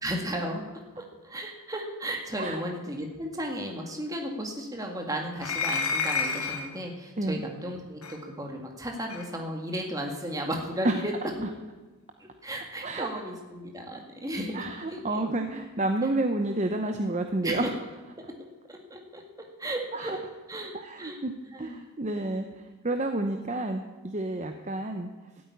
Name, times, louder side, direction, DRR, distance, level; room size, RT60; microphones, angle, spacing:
voice 1, 0.0-0.6 1.0-11.1 12.2-15.2 17.4-17.7 18.2-18.3 18.7-20.2 20.5-21.2 21.5-21.8, right 1 dB, 15° right, 2 dB, 1.9 m, -35 dB
sound 1, 5.4-6.7 8.0-8.2 9.1-9.3, left 5 dB, 70° left, 1.9 m, -29 dB
voice 2, 14.5-17.7 19.9-20.2 20.7-21.3 21.6-25.1, right 2 dB, 30° right, 6 dB, 0.7 m, -30 dB
13.0 x 8.7 x 9.6 m, 1.2 s
head